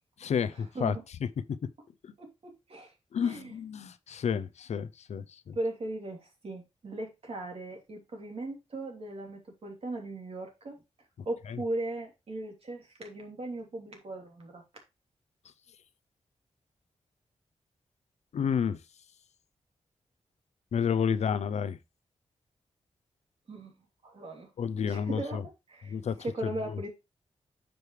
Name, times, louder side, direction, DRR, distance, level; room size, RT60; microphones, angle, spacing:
voice 1, 0.2-1.0 1.2-1.3 2.0-2.1 3.1-5.6 11.5-11.6 18.3-18.8 20.7-21.8 24.6-25.4 25.8-26.2 26.4-26.8, left 7 dB, 75° left, 0.6 m, -30 dB
voice 2, 2.2-2.9 3.2-3.5 5.5-10.8 11.2-14.6 23.5-23.7 24.0-24.5 24.9-25.4 25.7-26.9, right 2 dB, 60° right, 3.1 m, -38 dB
9.3 x 5.2 x 3.3 m
cardioid pair, 80°, 11 cm